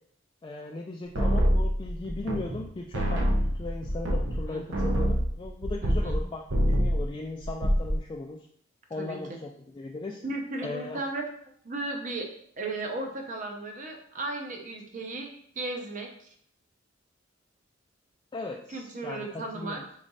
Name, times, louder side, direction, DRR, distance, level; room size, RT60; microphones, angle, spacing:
voice 1, 0.4-8.5 8.9-10.2 10.6-11.0 18.3-19.9, left 2 dB, 25° left, 0 dB, 0.3 m, -38 dB
sound 1, 1.1-2.7 2.9-6.2 6.5-7.1 7.4-8.0, equal, 70° right, 0.8 m, -25 dB
voice 2, 4.5-4.9 5.8-6.2 9.0-9.2 10.2-11.2 11.6-12.3 12.6-15.3 15.5-16.3 18.7-19.8, right 2 dB, 40° right, 2 dB, 0.7 m, -35 dB
3.7 x 3.2 x 4.0 m, 0.63 s
head